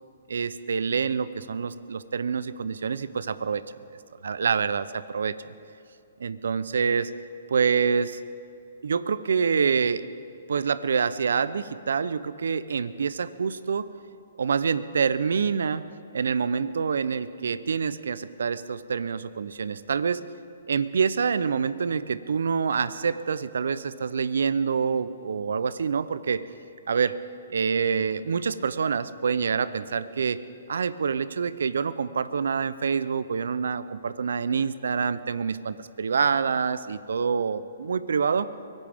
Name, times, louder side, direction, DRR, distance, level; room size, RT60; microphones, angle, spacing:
voice 1, 0.3-3.6 4.2-5.3 6.2-7.1 7.5-8.2 8.8-10.0 10.5-13.9 14.4-15.8 16.1-20.2 20.7-26.4 26.9-27.2 27.5-30.4 30.7-38.5, right 6 dB, 75° right, 16 dB, 0.6 m, -26 dB
24.0 x 17.0 x 3.6 m, 2.6 s
hypercardioid pair, 130°, 0 cm